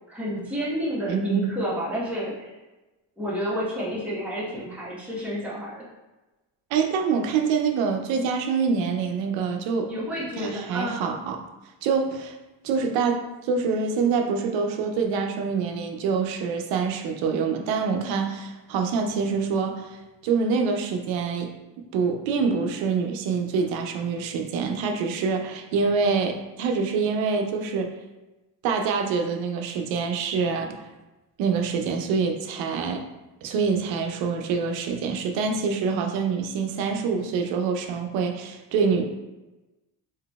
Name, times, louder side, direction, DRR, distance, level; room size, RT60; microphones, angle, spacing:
voice 1, 0.1-2.5 3.2-5.8 9.9-11.0, equal, 5° right, -8 dB, 1.1 m, -30 dB
voice 2, 1.1-1.6 6.7-9.9 10.4-11.4 11.8-12.4 12.6-21.5 21.9-27.9 28.6-30.9 31.4-33.0 33.4-39.0, right 5 dB, 85° right, 4 dB, 0.6 m, -25 dB
3.9 x 2.7 x 2.3 m, 1.1 s
cardioid pair, 95°, 45 cm